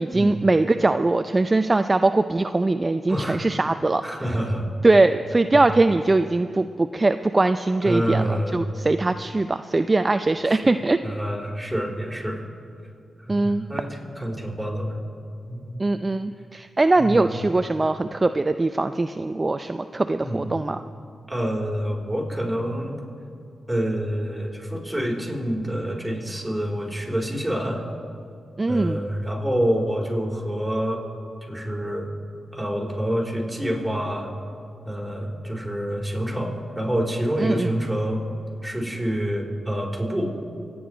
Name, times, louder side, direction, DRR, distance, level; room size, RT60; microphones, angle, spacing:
voice 1, 0.0-4.0 4.8-11.0 13.3-13.7 15.8-20.8 28.6-29.0 37.4-37.7, right 2 dB, 30° right, 9 dB, 0.4 m, -21 dB
voice 2, 3.1-3.4 4.0-4.6 5.5-5.6 7.8-8.6 10.5-10.6 11.0-12.4 13.2-15.0 15.5-15.8 17.0-17.3 20.2-20.5 21.3-23.0 23.7-27.8 28.7-31.0 31.5-32.1 32.5-34.3 34.8-38.2 38.6-40.3, equal, 5° right, -2 dB, 4.6 m, -27 dB
25.0 x 9.5 x 5.1 m, 2.5 s
cardioid pair, 55°, 0 cm